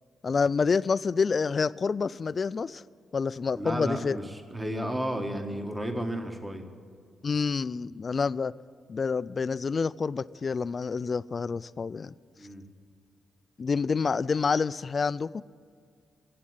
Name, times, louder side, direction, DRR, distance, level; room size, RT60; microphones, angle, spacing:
voice 1, 0.2-2.8 3.1-4.2 7.2-8.5 8.9-12.1 13.6-15.4, left 5 dB, 40° left, 18 dB, 0.3 m, -28 dB
voice 2, 3.5-6.6 12.3-12.7, right 1 dB, 15° right, 5 dB, 1.4 m, -33 dB
16.0 x 7.6 x 9.6 m, 2.1 s
cardioid pair, 90°, 0 cm